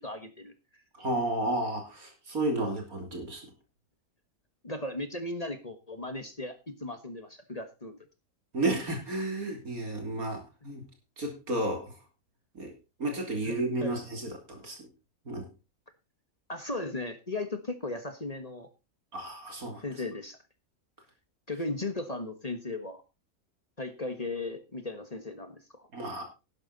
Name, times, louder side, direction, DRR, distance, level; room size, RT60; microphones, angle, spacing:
voice 1, 0.0-0.8 4.6-8.0 13.4-14.0 16.5-18.7 19.8-20.4 21.5-23.0 23.8-25.9, left 2 dB, 25° left, 9 dB, 1.4 m, -37 dB
voice 2, 1.0-3.4 8.5-10.8 11.2-11.9 12.6-14.9 15.3-15.5 19.1-19.8 25.9-26.2, right 2 dB, 70° right, 3 dB, 3.5 m, -32 dB
11.5 x 11.5 x 4.1 m, 0.29 s
omnidirectional pair, 1.6 m